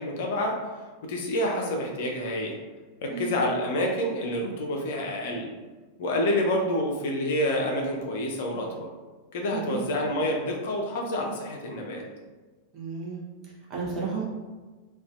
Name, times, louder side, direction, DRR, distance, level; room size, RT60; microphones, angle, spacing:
voice 1, 0.0-2.6 3.0-5.5 6.0-8.9 9.3-12.0, left 1 dB, 55° left, 0 dB, 0.4 m, -28 dB
voice 2, 9.5-9.9 12.7-14.2, right 5 dB, 30° right, -3 dB, 0.7 m, -34 dB
2.4 x 2.3 x 2.4 m, 1.3 s
figure-of-eight pair, 90°, 0 cm